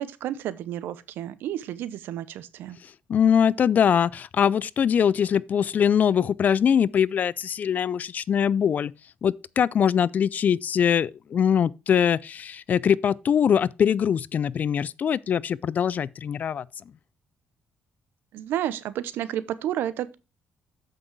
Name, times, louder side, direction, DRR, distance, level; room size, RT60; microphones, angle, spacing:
voice 1, 0.0-2.8 18.3-20.1, right 11 dB, 85° right, 0.7 m, -31 dB
voice 2, 3.1-8.9 9.2-16.6, left 8 dB, 50° left, 0.4 m, -22 dB
7.6 x 6.1 x 4.6 m
cardioid pair, 95°, 4 cm